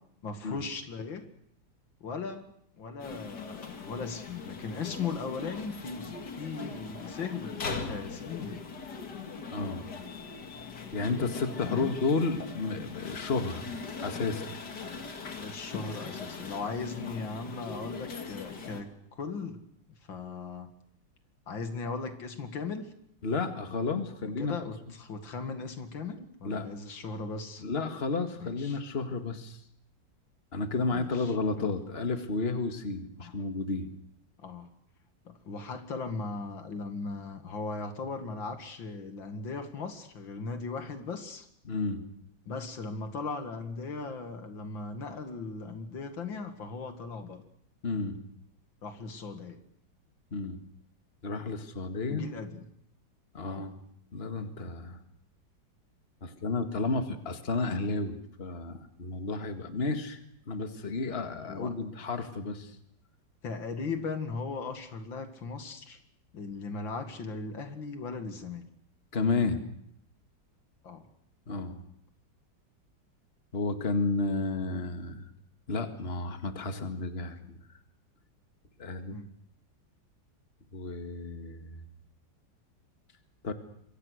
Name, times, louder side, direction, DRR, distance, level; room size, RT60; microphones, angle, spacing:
voice 1, 0.2-1.3 2.0-2.5 2.8-8.6 11.6-12.0 15.3-19.6 20.1-20.7 21.5-22.9 24.4-27.6 28.4-28.8 30.9-31.3 33.2-33.3 34.4-34.7 35.2-41.5 42.5-47.4 48.8-49.6 52.1-52.6 53.5-53.8 61.5-61.7 63.4-66.0 66.3-68.6 70.8-71.0 79.1-79.3, left 4 dB, 85° left, 7 dB, 2.8 m, -38 dB
sound 1, 3.0-18.8, left 5 dB, 60° left, 2.7 m, -40 dB
voice 2, 9.5-9.9 10.9-13.7 14.0-14.5 23.2-24.6 26.4-26.7 27.6-29.6 30.5-33.9 41.7-42.0 47.8-48.2 50.3-50.6 51.2-52.3 53.3-53.8 54.1-55.0 56.2-60.2 60.5-62.7 69.1-69.6 71.5-71.8 73.5-75.3 75.7-77.6 78.8-79.2 80.7-81.8 83.4-83.5, left 3 dB, 35° left, 7 dB, 2.0 m, -32 dB
26.5 x 23.5 x 6.5 m, 0.70 s
omnidirectional pair, 2.0 m